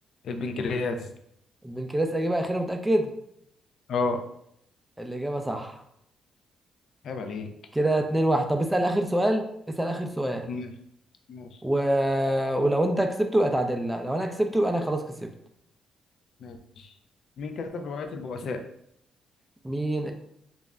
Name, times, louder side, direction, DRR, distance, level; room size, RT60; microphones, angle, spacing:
voice 1, 0.2-1.1 3.9-4.2 7.0-7.5 10.5-10.7 11.3-11.5 16.4-16.9 17.4-18.6, left 3 dB, 65° left, 6 dB, 0.3 m, -31 dB
voice 2, 1.6-3.1 5.0-5.8 7.7-10.5 11.6-15.3 19.6-20.1, right 1 dB, 5° right, 5 dB, 0.4 m, -25 dB
2.4 x 2.0 x 3.4 m, 0.72 s
cardioid pair, 90°, 0 cm